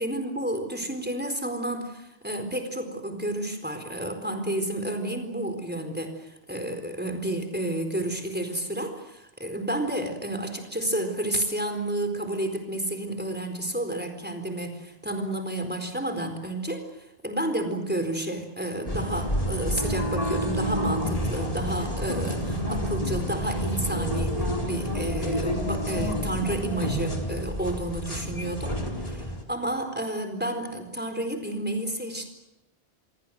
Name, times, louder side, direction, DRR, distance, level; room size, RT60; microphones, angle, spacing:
voice 1, 0.0-32.3, right 1 dB, 10° right, 6 dB, 4.4 m, -31 dB
sound 1, 18.9-29.4, equal, 35° left, 4.2 m, -29 dB
27.5 x 22.0 x 7.7 m, 0.91 s
omnidirectional pair, 1.0 m